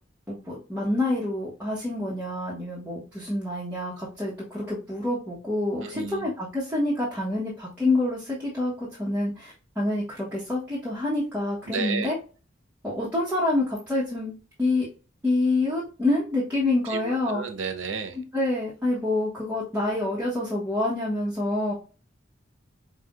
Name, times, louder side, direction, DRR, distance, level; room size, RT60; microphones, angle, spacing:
voice 1, 0.3-12.2 12.8-14.9 15.2-17.4 18.1-21.7, left 2 dB, 10° right, -8 dB, 1.2 m, -27 dB
voice 2, 5.8-6.3 11.7-12.1 16.9-18.2, right 5 dB, 90° right, 6 dB, 0.8 m, -32 dB
5.6 x 2.5 x 2.5 m, 0.35 s
head